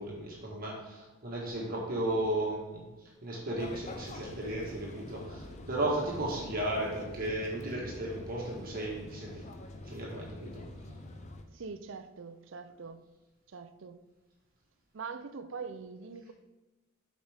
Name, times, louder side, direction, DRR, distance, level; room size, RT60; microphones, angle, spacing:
voice 1, 0.0-2.8 3.2-9.3 9.8-10.6, right 1 dB, 45° right, -3 dB, 1.4 m, -35 dB
sound 1, 3.6-11.4, left 1 dB, 35° left, 0.6 m, -45 dB
voice 2, 11.5-13.0 13.5-14.0 14.9-16.3, right 5 dB, 60° right, 10 dB, 0.5 m, -43 dB
8.1 x 5.1 x 3.5 m, 1.1 s
head